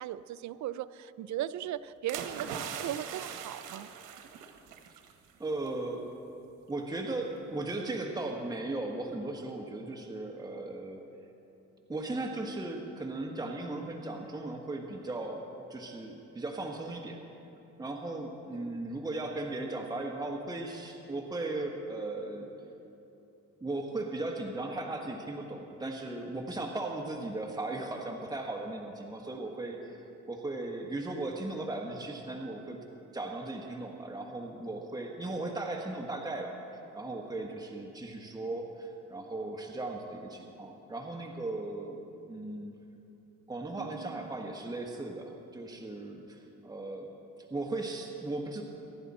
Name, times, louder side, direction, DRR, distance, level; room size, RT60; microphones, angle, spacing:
voice 1, 0.0-3.9 18.5-18.8 29.3-29.5 43.8-44.3, right 12 dB, 70° right, 15 dB, 0.5 m, -38 dB
sound 1, 2.1-5.1 5.4-5.7, right 7 dB, 85° right, 1.1 m, -41 dB
voice 2, 5.4-6.1 6.7-11.0 11.9-15.4 15.7-17.2 17.8-22.5 23.6-32.8 33.1-42.0 42.3-42.7 43.5-47.1 47.5-48.6, right 2 dB, 15° right, 2 dB, 1.4 m, -37 dB
24.0 x 11.0 x 4.3 m, 2.9 s
cardioid pair, 90°, 30 cm